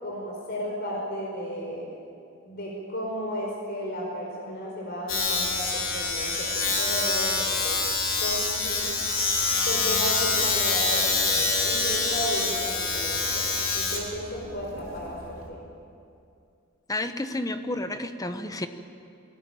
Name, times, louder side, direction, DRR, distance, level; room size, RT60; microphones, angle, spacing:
voice 1, 0.0-1.9 2.4-7.8 8.2-8.9 9.7-15.6, equal, 50° left, -2 dB, 4.7 m, -34 dB
Domestic sounds home sounds, 5.1-15.5, left 3 dB, 70° left, 4.0 m, -26 dB
voice 2, 16.9-18.7, left 1 dB, 15° left, 8 dB, 1.1 m, -31 dB
22.5 x 18.5 x 9.0 m, 2.5 s
head